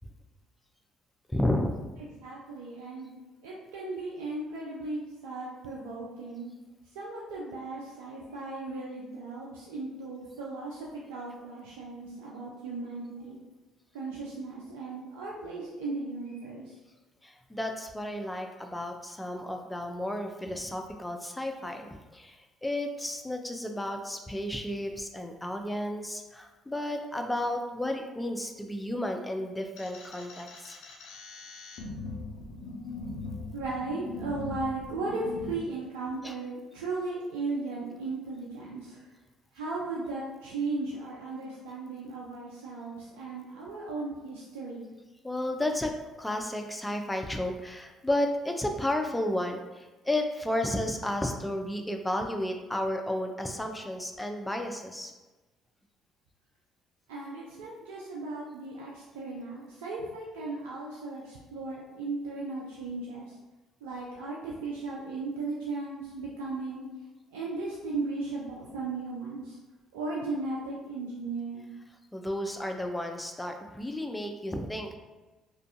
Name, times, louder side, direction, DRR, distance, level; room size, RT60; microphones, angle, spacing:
voice 1, 1.3-1.8 17.2-30.8 36.2-36.3 45.2-45.9 46.2-55.1 72.1-75.0, left 1 dB, 10° left, 4 dB, 0.4 m, -32 dB
voice 2, 2.0-3.2 3.4-6.5 6.9-13.4 13.9-16.8 33.5-39.0 39.5-44.9 57.1-63.4 63.8-66.9 67.3-69.6 69.9-71.7, right 3 dB, 80° right, -5 dB, 0.3 m, -36 dB
sound 1, 29.8-35.5, left 3 dB, 75° left, 0.4 m, -40 dB
2.4 x 2.2 x 2.5 m, 1.1 s
hypercardioid pair, 55°, 0 cm